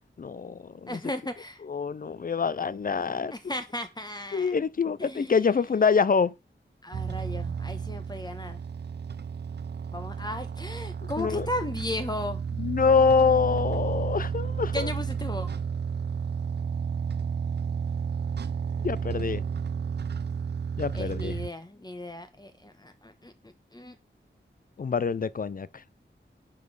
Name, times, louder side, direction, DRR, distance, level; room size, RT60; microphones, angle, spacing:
voice 1, 0.2-1.0 1.6-3.3 4.3-6.3 11.0-11.5 12.6-14.9 18.8-19.4 20.8-21.4 24.8-25.7, left 5 dB, 45° left, 0.4 m, -25 dB
voice 2, 0.9-1.6 3.3-4.5 5.0-5.3 6.8-8.6 9.9-12.4 14.7-15.6 18.8-19.0 19.3-19.5 20.9-24.0, left 1 dB, 20° left, 1.1 m, -36 dB
sound 1, 6.9-21.5, right 6 dB, 60° right, 0.4 m, -32 dB
10.5 x 4.5 x 4.8 m
wide cardioid pair, 80°, 20 cm